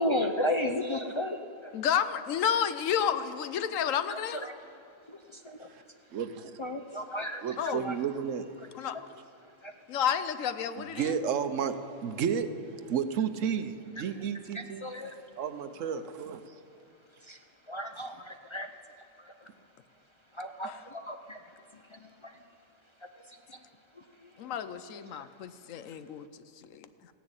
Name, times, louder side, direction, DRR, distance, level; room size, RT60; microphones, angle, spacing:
voice 1, 0.0-1.7 4.1-4.8 5.1-5.7 6.6-8.0 8.6-8.7 8.9-9.0 9.4-9.8 14.0-14.1 14.5-15.2 17.2-19.5 20.3-22.4 23.0-23.6 23.9-24.5 25.1-25.3, left 1 dB, 35° left, 6 dB, 0.4 m, -36 dB
voice 2, 1.7-4.4 7.6-7.9 8.7-9.0 9.9-11.1 20.6-20.7 24.4-26.3 26.6-26.9, left 8 dB, 80° left, 12 dB, 1.1 m, -31 dB
voice 3, 6.1-6.5 7.4-8.5 10.8-12.5 12.9-14.8 15.4-16.4, right 7 dB, 75° right, 10 dB, 1.1 m, -32 dB
15.5 x 10.5 x 8.8 m, 2.5 s
omnidirectional pair, 1.3 m